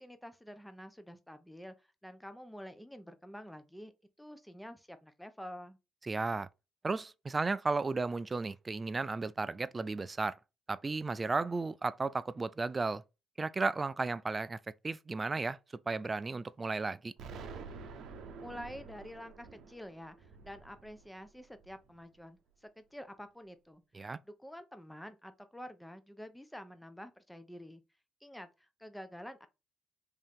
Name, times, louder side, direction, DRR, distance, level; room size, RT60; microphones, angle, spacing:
voice 1, 0.0-3.9 4.2-5.8 18.4-23.8 24.2-27.8 28.2-29.5, equal, 5° left, 0.7 m, -48 dB
voice 2, 6.1-6.5 6.8-10.4 10.7-13.0 13.4-14.6 14.8-15.6 15.9-17.1 23.9-24.2, right 3 dB, 25° right, 0.4 m, -34 dB
Explosion, 17.2-22.0, right 5 dB, 70° right, 0.7 m, -49 dB
3.7 x 2.7 x 3.5 m
supercardioid pair, 80°, 0 cm